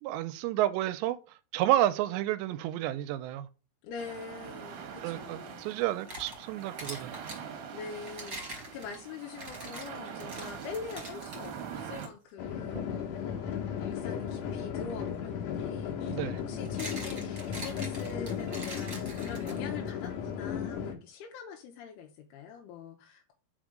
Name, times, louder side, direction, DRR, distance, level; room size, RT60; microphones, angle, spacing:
voice 1, 0.0-1.2 1.5-3.5 5.0-7.1 16.1-16.4, right 14 dB, 85° right, 2.7 m, -30 dB
voice 2, 3.8-5.7 7.7-23.3, left 6 dB, 75° left, 2.5 m, -44 dB
sound 1, 4.0-12.1, right 7 dB, 65° right, 2.2 m, -43 dB
sound 2, 5.8-7.4 8.0-11.5 11.9-12.1 12.7-13.0 15.1-15.2 16.4-19.9, right 1 dB, 25° right, 2.7 m, -44 dB
sound 3, 12.4-20.9, left 8 dB, 60° left, 2.5 m, -35 dB
5.3 x 5.3 x 5.0 m
omnidirectional pair, 5.2 m